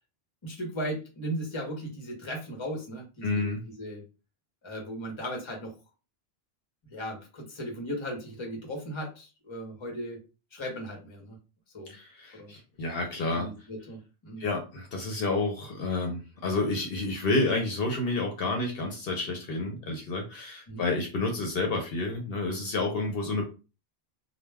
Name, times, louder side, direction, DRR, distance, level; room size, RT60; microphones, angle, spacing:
voice 1, 0.4-4.0 4.6-5.7 6.9-10.2 10.5-11.4 11.7-11.9 12.3-12.5 13.3-14.4 20.7-20.8, equal, 30° left, 0 dB, 0.8 m, -37 dB
voice 2, 3.2-3.6 11.9-13.5 14.4-23.4, left 2 dB, 70° left, 2 dB, 0.8 m, -30 dB
2.2 x 2.2 x 3.3 m, 0.32 s
omnidirectional pair, 1.0 m